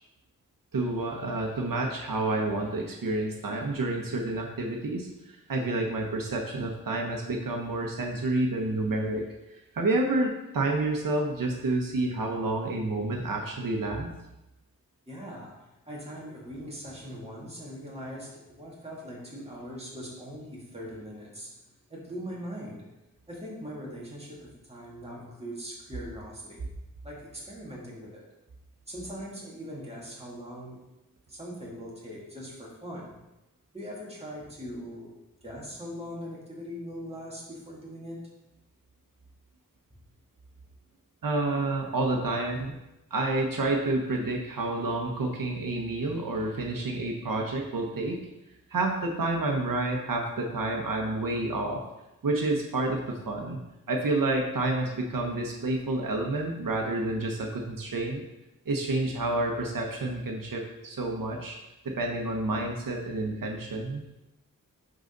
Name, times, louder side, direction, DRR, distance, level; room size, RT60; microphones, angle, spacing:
voice 1, 0.7-5.1 5.5-9.2 9.5-14.1 41.2-42.7 43.1-48.2 48.7-51.8 52.2-53.6 53.9-58.2 58.7-61.6 61.8-64.0, right 2 dB, 90° right, 1 dB, 1.0 m, -29 dB
voice 2, 15.1-21.5 21.9-22.9 23.3-26.7 27.0-28.2 28.9-30.8 31.3-33.1 33.7-35.1 35.4-38.2, equal, 20° right, -5 dB, 2.5 m, -41 dB
10.5 x 4.0 x 3.9 m, 0.95 s
wide cardioid pair, 95°, 32 cm